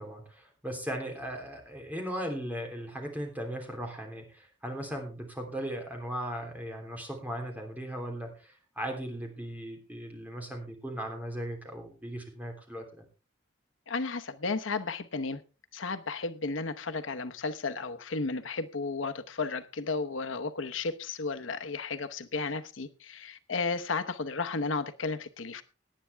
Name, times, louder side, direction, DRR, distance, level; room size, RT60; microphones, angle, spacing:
voice 1, 0.0-13.0, equal, 10° right, 3.2 m, -38 dB
voice 2, 13.9-15.4 15.7-25.6, left 4 dB, 90° left, 0.9 m, -33 dB
18.0 x 10.0 x 3.4 m
head